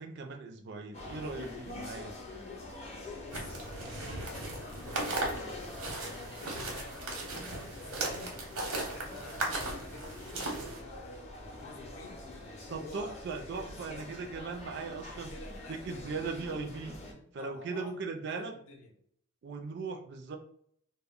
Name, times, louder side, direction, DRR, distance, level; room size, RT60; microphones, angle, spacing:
voice 1, 0.0-2.2 12.7-15.3 15.7-17.0 17.3-18.5 19.4-20.4, right 4 dB, 50° right, 4 dB, 0.3 m, -38 dB
sound 1, 0.9-17.1, left 2 dB, 30° left, 0.5 m, -45 dB
voice 2, 3.0-5.6 5.8-8.4 8.7-12.2 12.6-14.0 15.1-18.9, left 2 dB, 75° left, 3 dB, 0.6 m, -51 dB
sound 2, 3.3-10.8, right 2 dB, 85° right, 0.8 m, -37 dB
2.1 x 2.1 x 3.5 m, 0.65 s
head